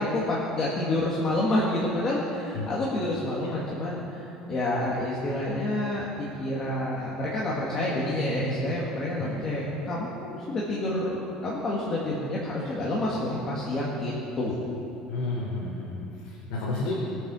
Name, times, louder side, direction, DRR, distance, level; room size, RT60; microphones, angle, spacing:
voice 1, 0.0-14.7, left 1 dB, 25° left, -6 dB, 2.0 m, -28 dB
voice 2, 15.1-17.0, left 2 dB, 85° left, -5 dB, 3.7 m, -32 dB
20.5 x 8.9 x 6.2 m, 2.9 s
cardioid pair, 170°, 2 cm